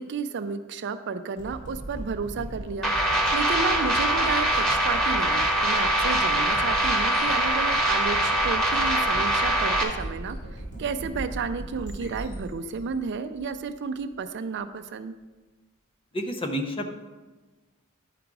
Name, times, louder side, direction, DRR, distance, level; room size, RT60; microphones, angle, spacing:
voice 1, 0.0-2.9 3.3-10.4 10.8-15.1, right 5 dB, 55° right, 10 dB, 0.4 m, -32 dB
sound 1, 1.4-14.0, right 1 dB, 55° left, 2.9 m, -38 dB
sound 2, 2.8-9.8, right 1 dB, 5° left, 1.1 m, -23 dB
voice 2, 16.1-16.9, equal, 25° left, 5 dB, 0.7 m, -29 dB
10.5 x 5.0 x 4.7 m, 1.2 s
head